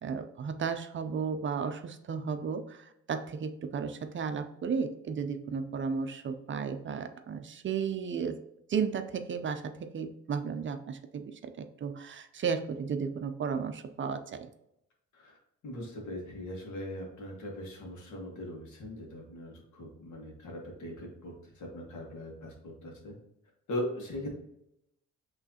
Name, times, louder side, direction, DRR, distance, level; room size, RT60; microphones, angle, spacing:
voice 1, 0.0-8.4 8.7-14.5, right 6 dB, 40° right, 8 dB, 0.5 m, -34 dB
voice 2, 15.6-23.2 23.7-24.3, left 1 dB, 70° left, 0 dB, 1.6 m, -40 dB
5.8 x 3.2 x 2.8 m, 0.81 s
cardioid pair, 90°, 30 cm